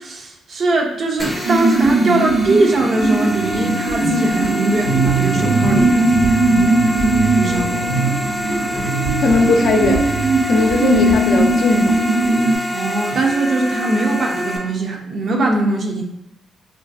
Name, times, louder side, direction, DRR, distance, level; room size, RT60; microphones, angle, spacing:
voice 1, 0.0-6.8 7.3-7.8 12.7-16.0, right 2 dB, 50° right, 1 dB, 0.6 m, -21 dB
sound 1, 1.2-14.6, left 1 dB, 5° right, 0.6 m, -26 dB
sound 2, 1.4-12.6, right 2 dB, 80° right, 1.3 m, -18 dB
voice 2, 9.2-10.1 10.5-11.9, left 3 dB, 70° left, 3 dB, 0.5 m, -17 dB
3.1 x 2.5 x 2.5 m, 0.84 s
cardioid pair, 90°, 0 cm